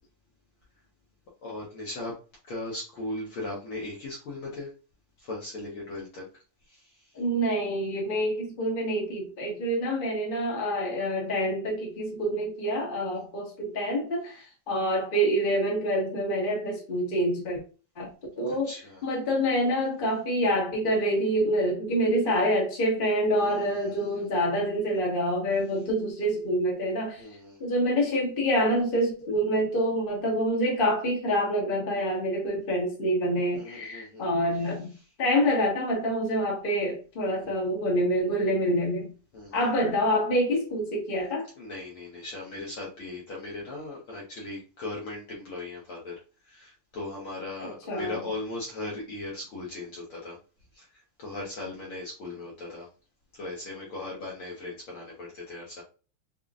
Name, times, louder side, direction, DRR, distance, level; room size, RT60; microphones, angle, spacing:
voice 1, 1.4-2.2 2.4-4.7 5.2-7.2 13.1-13.2 18.4-19.1 23.5-24.3 27.2-27.6 33.5-34.2 34.6-35.0 37.4-37.5 39.3-39.6 41.6-50.4 50.7-52.9 53.3-55.8, left 2 dB, 65° left, 1.4 m, -38 dB
voice 2, 7.1-17.6 18.0-18.1 18.4-18.7 19.0-27.2 27.6-34.9 35.2-39.1 39.5-41.5 47.9-48.2, equal, 40° left, 0.7 m, -26 dB
5.5 x 2.2 x 2.4 m
omnidirectional pair, 3.4 m